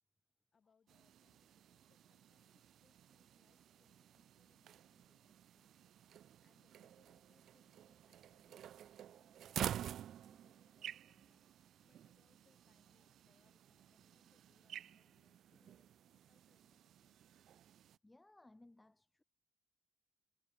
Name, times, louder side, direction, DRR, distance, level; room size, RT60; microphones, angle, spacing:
voice 1, 0.5-5.7 6.4-11.5 11.8-17.2, left 6 dB, 30° left, 4.5 m, -78 dB
sound 1, 0.9-18.0, right 10 dB, 55° right, 0.4 m, -50 dB
voice 2, 18.0-19.2, left 2 dB, 10° left, 1.2 m, -64 dB
cardioid pair, 155°, 0 cm